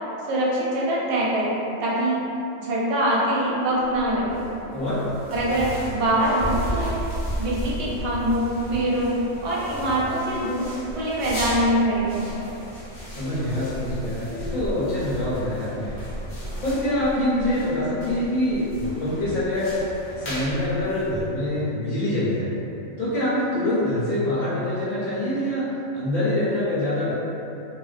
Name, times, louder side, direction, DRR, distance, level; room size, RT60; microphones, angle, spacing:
voice 1, 0.2-2.2 2.6-4.4 5.3-7.0 7.4-12.3, right 1 dB, 65° right, -6 dB, 0.8 m, -24 dB
sound 1, 3.8-21.6, equal, 50° left, 0.6 m, -34 dB
voice 2, 13.1-15.9 16.6-19.8 20.2-22.5 23.0-27.1, left 1 dB, 85° left, -12 dB, 1.1 m, -25 dB
2.4 x 2.1 x 2.4 m, 2.8 s
omnidirectional pair, 1.4 m